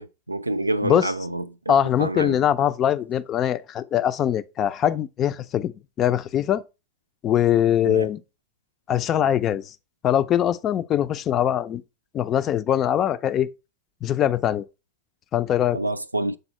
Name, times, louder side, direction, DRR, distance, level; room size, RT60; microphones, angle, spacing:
voice 1, 0.0-2.4 7.8-8.1 15.7-16.4, right 2 dB, 85° right, 0.3 m, -28 dB
voice 2, 1.7-5.7 6.0-6.6 7.2-8.2 8.9-9.6 10.0-11.8 12.1-13.5 14.0-14.6 15.3-15.8, left 10 dB, 30° left, 0.4 m, -22 dB
6.8 x 4.0 x 4.3 m
figure-of-eight pair, 90°, 0 cm